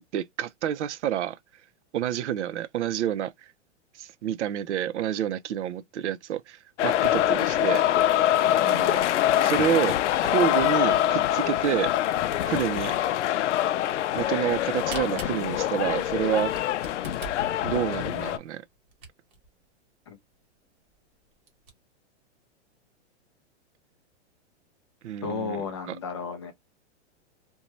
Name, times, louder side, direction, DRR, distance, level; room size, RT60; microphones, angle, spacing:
voice 1, 0.0-1.4 1.9-3.3 4.0-7.9 8.6-9.0 9.4-9.9 10.2-11.9 12.4-12.9 14.1-16.5 17.6-18.6 25.0-26.0, right 10 dB, 80° right, 0.6 m, -28 dB
sound 1, 6.8-18.4, left 12 dB, 85° left, 0.5 m, -24 dB
voice 2, 7.0-7.4 8.5-8.8 20.1-20.2 25.2-26.5, left 5 dB, 25° left, 0.4 m, -35 dB
Camera, 14.9-19.5 20.0-20.1 20.3-20.4 20.9-21.0 21.3-21.7, right 4 dB, 25° right, 0.8 m, -43 dB
2.7 x 2.2 x 2.9 m
supercardioid pair, 165°, 34 cm